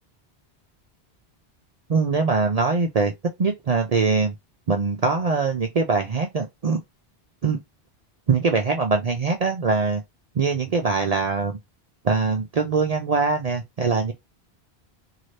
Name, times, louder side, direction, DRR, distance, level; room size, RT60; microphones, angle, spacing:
voice 1, 1.9-3.1 3.4-4.3 4.7-6.8 7.4-7.6 8.3-10.0 10.3-11.6 12.0-14.1, right 4 dB, 50° right, 0.5 m, -22 dB
2.8 x 2.7 x 3.1 m
omnidirectional pair, 1.1 m